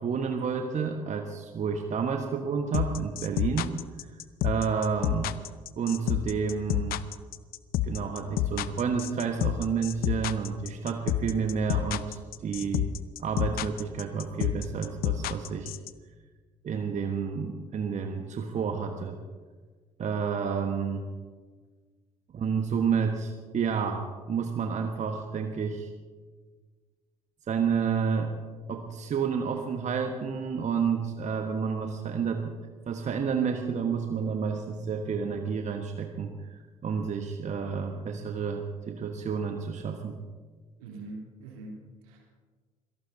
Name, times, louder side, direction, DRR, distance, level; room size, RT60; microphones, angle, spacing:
voice 1, 0.0-4.1 4.4-5.3 5.8-7.0 7.8-12.9 13.2-15.7 16.6-19.2 20.0-21.1 22.3-25.9 27.5-28.3 28.7-32.5 32.9-40.2, right 6 dB, 40° right, 4 dB, 1.4 m, -30 dB
sound 1, 2.7-15.9, left 13 dB, 55° left, 0.7 m, -28 dB
voice 2, 40.8-42.3, right 2 dB, 75° right, -1 dB, 3.4 m, -43 dB
26.0 x 18.5 x 2.8 m, 1.4 s
figure-of-eight pair, 50°, 19 cm